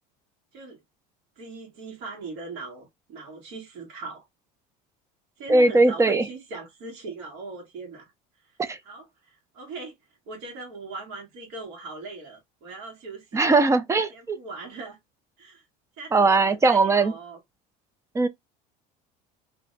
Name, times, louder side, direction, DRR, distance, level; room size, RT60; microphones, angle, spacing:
voice 1, 1.4-4.2 5.4-8.1 8.8-9.9 10.3-13.6 14.1-15.0 15.4-15.6 16.0-17.4, right 3 dB, 65° right, 1.3 m, -40 dB
voice 2, 5.5-6.2 8.6-8.8 13.3-14.4 16.1-17.1 18.1-18.3, right 3 dB, 15° right, 0.4 m, -20 dB
2.6 x 2.0 x 3.7 m
supercardioid pair, 120°, 19 cm